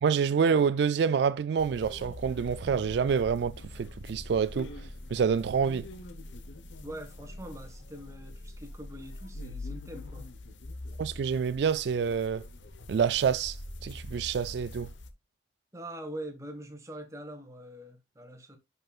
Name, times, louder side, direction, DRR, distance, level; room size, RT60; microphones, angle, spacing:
voice 1, 0.0-4.7 5.1-5.8 11.0-12.5 12.9-14.9, right 6 dB, 65° right, 0.3 m, -27 dB
sound 1, 1.6-15.1, left 1 dB, 80° left, 1.0 m, -44 dB
voice 2, 6.8-10.3 15.7-18.6, right 1 dB, 15° right, 1.5 m, -43 dB
10.5 x 5.5 x 2.4 m
head